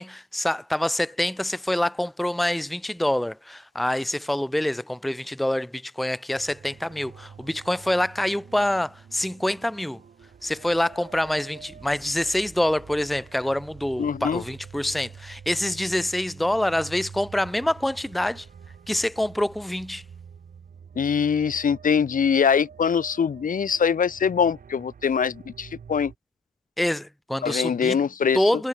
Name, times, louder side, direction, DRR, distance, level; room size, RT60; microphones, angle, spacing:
voice 1, 0.0-10.0 10.4-18.5 18.9-20.0 26.8-28.0 28.3-28.7, left 1 dB, ahead, 0.6 m, -26 dB
sound 1, 6.3-26.2, right 7 dB, 85° right, 2.9 m, -46 dB
voice 2, 14.0-14.4 21.0-26.1 27.4-28.5, left 7 dB, 75° left, 1.3 m, -23 dB
wide cardioid pair, 135°, 14 cm